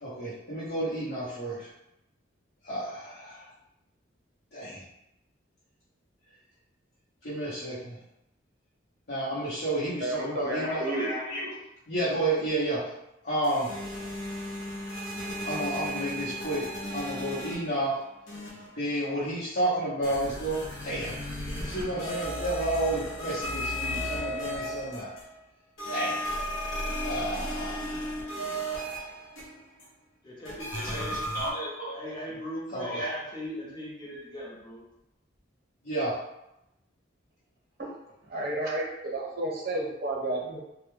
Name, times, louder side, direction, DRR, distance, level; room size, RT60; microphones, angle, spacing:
voice 1, 0.0-1.7 2.6-3.4 4.5-4.8 7.2-8.0 9.1-11.5 11.9-12.9 13.2-13.7 15.4-16.7 16.9-18.0 18.8-21.1 21.6-25.1 25.9-26.2 27.0-28.1 30.7-32.0 32.7-33.1 35.8-36.2, right 1 dB, 55° left, -11 dB, 0.8 m, -31 dB
voice 2, 10.0-11.1 37.8-37.9 38.3-40.6, right 1 dB, 55° right, -3 dB, 0.8 m, -31 dB
sound 1, 13.4-17.9 18.3-18.8 20.0-25.4 25.8-29.8 30.5-31.5, equal, 85° left, 0.7 m, -35 dB
voice 3, 30.2-31.4 31.9-34.8, equal, 25° left, -5 dB, 0.7 m, -39 dB
2.2 x 2.2 x 3.1 m, 0.89 s
head